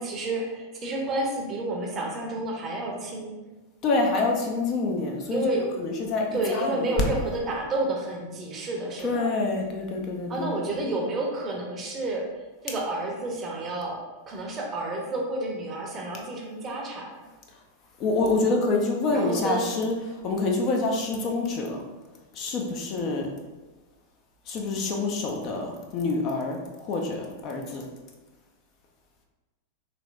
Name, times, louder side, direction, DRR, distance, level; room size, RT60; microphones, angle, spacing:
voice 1, 0.0-3.4 5.3-5.6 6.3-9.3 10.3-12.3 12.6-17.1 19.1-19.8, right 2 dB, 25° right, 0 dB, 0.7 m, -30 dB
voice 2, 3.8-6.9 9.0-10.8 18.0-19.9 20.2-21.8 22.3-23.3 24.5-27.8, left 3 dB, 35° left, 1 dB, 0.5 m, -27 dB
3.2 x 3.0 x 2.4 m, 1.2 s
figure-of-eight pair, 90°, 0 cm